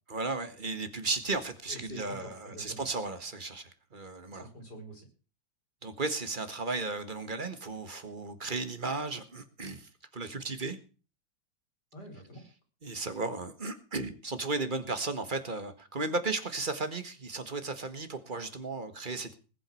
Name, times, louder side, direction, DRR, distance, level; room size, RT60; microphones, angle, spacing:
voice 1, 0.1-4.5 5.8-10.8 12.8-19.3, right 3 dB, 25° right, 10 dB, 1.7 m, -35 dB
voice 2, 1.7-2.8 4.3-5.1 11.9-12.4, right 1 dB, 60° left, 3 dB, 5.7 m, -46 dB
20.0 x 7.8 x 6.3 m, 0.36 s
omnidirectional pair, 2.0 m